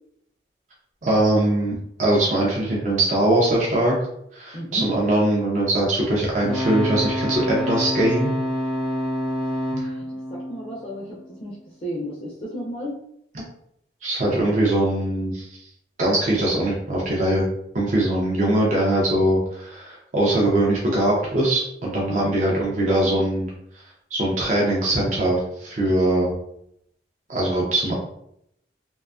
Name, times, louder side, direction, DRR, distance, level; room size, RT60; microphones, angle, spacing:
voice 1, 1.0-4.0 4.3-8.3 9.8-9.9 13.3-13.4 14.0-15.5 16.0-17.5 17.7-23.5 24.1-26.3 27.3-27.9, right 1 dB, 40° right, -4 dB, 0.5 m, -21 dB
voice 2, 4.5-4.8 9.7-11.6 11.8-13.0 22.1-22.3, equal, 30° left, -4 dB, 0.4 m, -33 dB
sound 1, 6.4-11.4 14.2-14.3, equal, 90° right, 1.0 m, -27 dB
2.5 x 2.2 x 2.4 m, 0.74 s
head